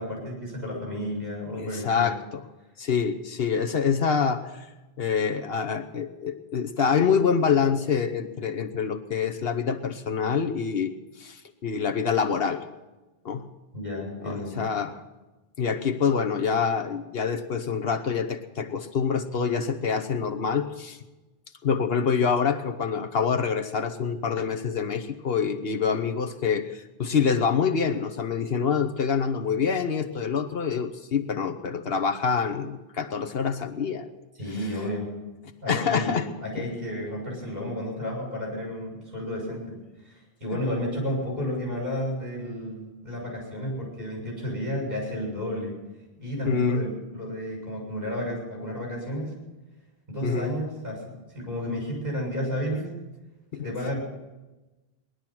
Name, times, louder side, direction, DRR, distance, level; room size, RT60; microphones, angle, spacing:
voice 1, 0.0-2.1 13.7-14.6 34.4-35.1 35.6-39.8 40.0-45.8 46.2-49.3 50.1-52.9 53.5-54.0, equal, 45° right, -2 dB, 7.2 m, -32 dB
voice 2, 1.5-2.4 2.8-4.6 5.0-10.9 11.2-12.6 13.2-13.4 14.2-15.0 15.6-21.0 21.6-34.1 35.7-36.3 46.4-46.9 50.2-50.6 53.5-53.7, left 6 dB, 70° left, 7 dB, 1.2 m, -26 dB
19.5 x 11.5 x 6.0 m, 1.1 s
omnidirectional pair, 1.0 m